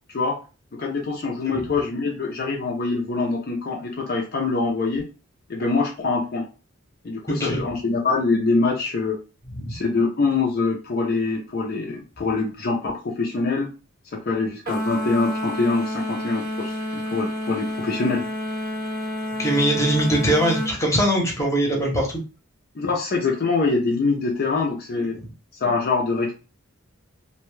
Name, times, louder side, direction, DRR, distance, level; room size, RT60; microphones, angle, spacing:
voice 1, 0.8-5.1 5.5-6.4 7.0-9.2 9.7-13.7 14.1-18.2 22.8-25.2 25.6-26.3, left 3 dB, 45° left, -1 dB, 0.4 m, -24 dB
voice 2, 7.3-7.6 9.5-9.8 19.4-22.2 25.1-25.3, right 1 dB, 15° left, -1 dB, 0.7 m, -22 dB
sound 1, 14.7-20.7, left 1 dB, 40° right, 0.6 m, -29 dB
2.6 x 2.1 x 3.1 m, 0.33 s
head